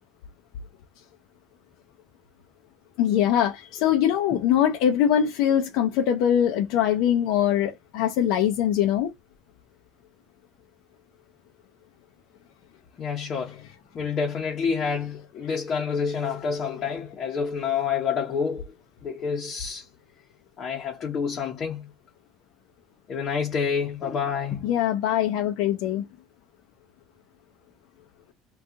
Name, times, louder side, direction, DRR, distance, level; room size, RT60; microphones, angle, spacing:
voice 1, 3.0-9.1 24.6-26.1, left 10 dB, 80° left, 0.4 m, -22 dB
voice 2, 13.0-13.6 13.9-18.7 19.0-19.9 20.6-21.9 23.1-24.7, left 6 dB, 40° left, 0.7 m, -28 dB
2.7 x 2.3 x 3.6 m
cardioid pair, 135°, 0 cm